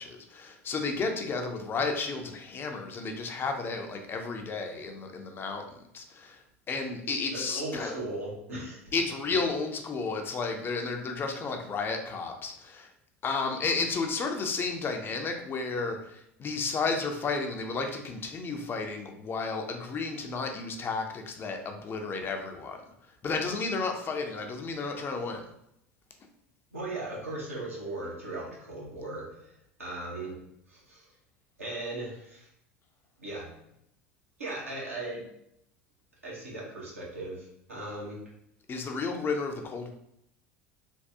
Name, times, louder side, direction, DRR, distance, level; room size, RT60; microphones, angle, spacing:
voice 1, 0.0-8.0 8.9-12.9 13.2-25.5 38.7-39.9, left 4 dB, 30° left, 4 dB, 0.5 m, -32 dB
voice 2, 7.3-8.8 26.7-30.4 30.7-31.1 31.6-32.5 33.2-33.5 34.4-35.2 36.2-38.2, right 2 dB, 85° right, -5 dB, 1.1 m, -38 dB
3.4 x 2.2 x 2.7 m, 0.77 s
figure-of-eight pair, 75°, 7 cm